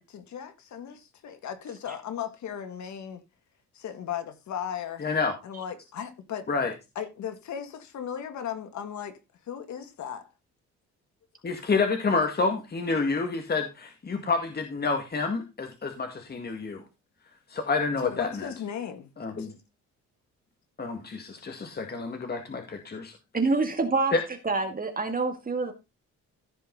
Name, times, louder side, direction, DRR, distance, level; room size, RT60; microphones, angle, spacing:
voice 1, 0.0-3.2 3.7-5.1 5.4-6.5 7.0-9.2 9.5-10.3 11.5-11.6 18.0-19.1 19.4-19.5, left 9 dB, 70° left, 2.1 m, -36 dB
voice 2, 5.0-5.3 6.5-6.7 11.4-16.8 17.5-18.5 19.2-19.5 20.8-23.1 24.1-24.2, left 4 dB, 30° left, 1.9 m, -28 dB
voice 3, 23.3-24.1 24.4-25.7, right 3 dB, 30° right, 2.2 m, -26 dB
15.0 x 5.3 x 4.0 m
cardioid pair, 90°, 30 cm